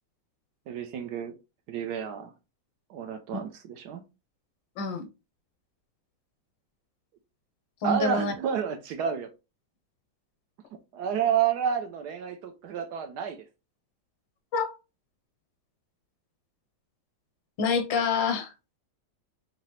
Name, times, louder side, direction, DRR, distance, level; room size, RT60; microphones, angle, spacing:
voice 1, 0.7-1.3 1.7-2.3 2.9-4.0 7.8-9.3 10.9-13.4, right 8 dB, 70° right, 1.1 m, -30 dB
voice 2, 4.8-5.1 7.8-8.3 14.5-14.8 17.6-18.5, left 4 dB, 85° left, 1.5 m, -27 dB
4.1 x 2.8 x 3.0 m
omnidirectional pair, 2.0 m